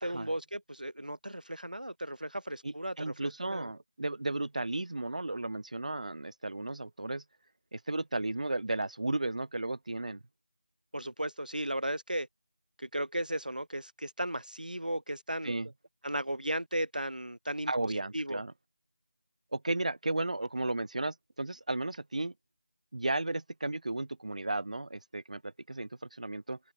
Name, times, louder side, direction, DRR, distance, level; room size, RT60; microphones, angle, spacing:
voice 1, 0.0-3.7 10.9-12.3 12.8-15.5 16.0-18.4, right 1 dB, 85° right, 3.5 m, -36 dB
voice 2, 2.6-7.2 7.7-10.2 15.4-15.7 17.7-18.5 19.5-22.3 22.9-26.6, right 2 dB, 60° right, 1.7 m, -34 dB
figure-of-eight pair, 165°, 4 cm